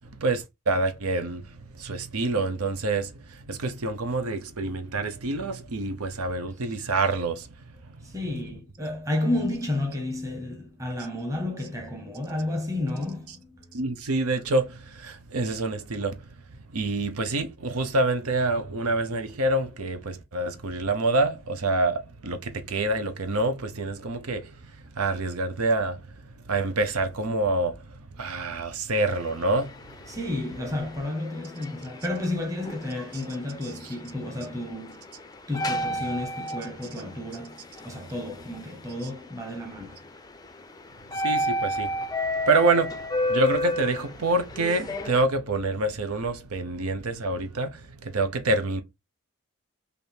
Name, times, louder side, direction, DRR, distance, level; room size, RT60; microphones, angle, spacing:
voice 1, 0.2-1.4 1.8-3.1 3.5-7.5 13.7-16.2 16.7-24.5 25.0-26.0 26.5-27.8 28.2-29.8 41.2-41.9 42.5-43.0 43.3-48.8, right 2 dB, 90° right, 0.7 m, -26 dB
voice 2, 8.1-13.8 30.1-35.0 35.5-40.1, left 1 dB, 15° right, 1.0 m, -31 dB
sound 1, 29.0-45.2, left 1 dB, 15° left, 0.4 m, -33 dB
3.4 x 2.6 x 4.3 m
head